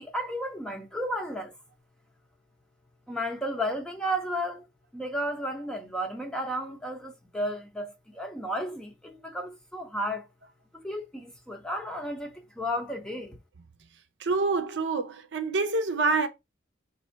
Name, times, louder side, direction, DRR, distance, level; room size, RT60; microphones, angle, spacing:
voice 1, 0.0-1.5 3.1-4.7 4.9-10.3 10.7-13.4, equal, 5° left, 0.7 m, -33 dB
voice 2, 14.2-16.3, right 3 dB, 70° right, 0.6 m, -26 dB
4.0 x 2.7 x 4.4 m
head